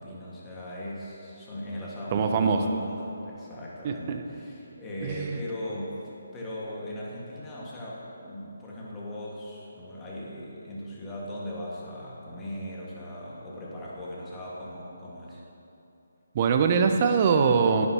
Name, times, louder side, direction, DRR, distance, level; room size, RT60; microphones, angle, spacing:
voice 1, 0.0-6.0 6.3-15.4, left 1 dB, 15° left, -6 dB, 1.7 m, -38 dB
voice 2, 2.1-2.6 3.8-4.2 5.0-5.3 16.3-17.9, right 5 dB, 35° right, 6 dB, 0.6 m, -23 dB
10.5 x 9.5 x 2.9 m, 2.9 s
figure-of-eight pair, 155°, 0 cm